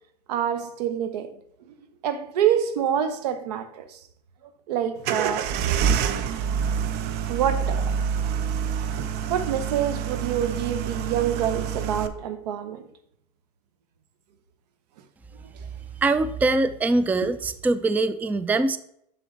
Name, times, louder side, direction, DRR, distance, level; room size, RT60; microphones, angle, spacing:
voice 1, 0.3-1.3 2.0-4.0 4.7-5.5 7.3-7.9 9.3-12.8, right 9 dB, 85° right, 0.9 m, -26 dB
sound 1, 5.0-12.1, right 7 dB, 55° right, 0.7 m, -27 dB
voice 2, 16.0-18.8, right 2 dB, 10° right, 0.3 m, -23 dB
7.1 x 6.1 x 3.2 m
supercardioid pair, 110°, 20 cm